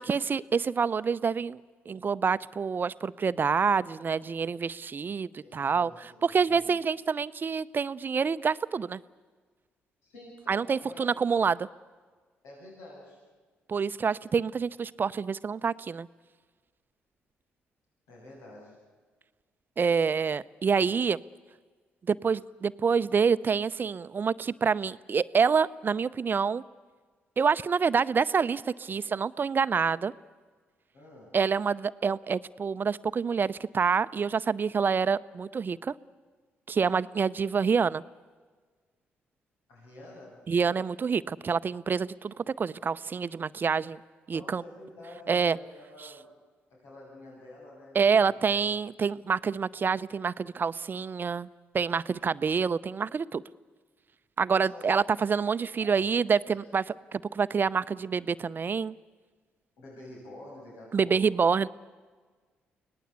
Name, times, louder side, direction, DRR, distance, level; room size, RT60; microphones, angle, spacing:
voice 1, 0.0-1.6 1.9-5.9 6.2-9.0 10.5-11.7 13.7-16.1 19.8-21.2 22.1-26.6 27.4-30.1 31.3-35.9 36.7-38.0 40.5-44.0 44.3-44.6 45.3-45.6 47.9-51.5 51.7-53.4 54.4-56.8 57.1-59.0 60.9-61.7, right 6 dB, 45° right, 15 dB, 0.7 m, -27 dB
voice 2, 5.4-6.6 10.0-11.1 12.4-13.2 18.1-18.8 30.9-31.3 39.7-40.4 44.3-46.3 46.7-48.3 54.6-54.9 55.6-55.9 56.5-56.6 59.8-61.2, left 1 dB, 85° left, -4 dB, 7.4 m, -48 dB
24.5 x 18.5 x 8.3 m, 1.4 s
supercardioid pair, 55°, 5 cm